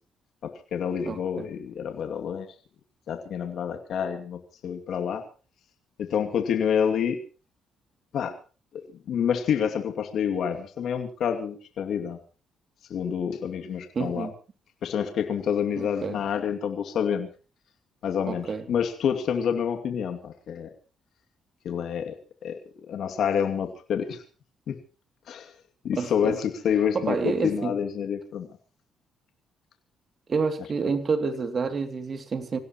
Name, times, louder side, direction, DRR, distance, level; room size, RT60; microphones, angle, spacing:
voice 1, 0.4-2.5 3.1-5.2 6.0-7.2 8.1-8.4 8.7-12.2 12.9-14.3 14.8-17.3 18.0-20.7 21.6-22.2 22.4-22.6 22.9-24.2 24.7-24.8 25.3-25.5 25.8-28.5, left 8 dB, 70° left, 5 dB, 2.5 m, -28 dB
voice 2, 1.0-1.5 13.9-14.3 15.8-16.2 18.2-18.7 26.0-26.3 26.9-27.7 30.3-32.6, right 4 dB, 45° right, 9 dB, 2.7 m, -28 dB
26.5 x 17.0 x 3.1 m, 0.37 s
cardioid pair, 90°, 0 cm